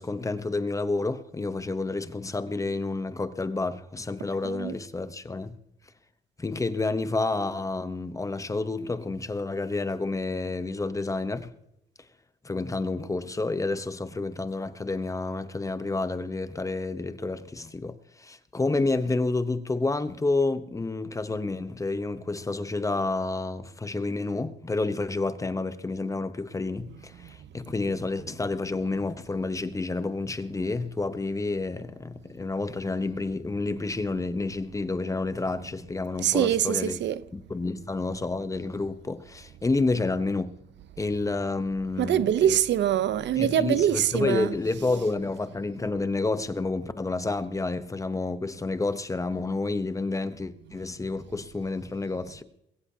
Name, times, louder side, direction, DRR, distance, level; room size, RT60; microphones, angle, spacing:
voice 1, 0.0-5.6 6.4-11.5 12.4-37.0 37.3-40.6 41.0-42.6 43.4-52.4, left 3 dB, 15° left, 0.8 m, -29 dB
voice 2, 36.2-37.2 42.0-44.5, right 10 dB, 70° right, 0.6 m, -24 dB
21.0 x 16.5 x 2.7 m
cardioid pair, 120°, 19 cm